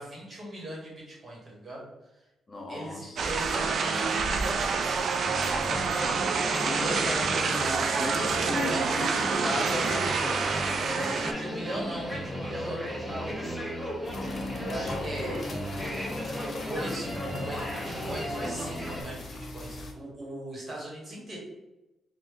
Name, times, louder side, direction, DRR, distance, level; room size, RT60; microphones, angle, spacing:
voice 1, 0.0-1.9 2.7-5.0 6.8-7.6 8.1-9.1 9.3-9.6 10.9-13.4 14.6-15.5 16.5-21.4, right 1 dB, 35° right, -4 dB, 1.4 m, -39 dB
voice 2, 2.5-3.2 6.7-10.5, left 2 dB, 35° left, 1 dB, 0.8 m, -36 dB
sound 1, 3.2-11.3, right 5 dB, 65° right, 0.3 m, -28 dB
sound 2, 5.3-19.0, equal, ahead, 0.9 m, -35 dB
sound 3, 14.0-19.9, left 2 dB, 55° left, 0.6 m, -39 dB
3.0 x 2.5 x 3.7 m, 0.98 s
cardioid pair, 80°, 0 cm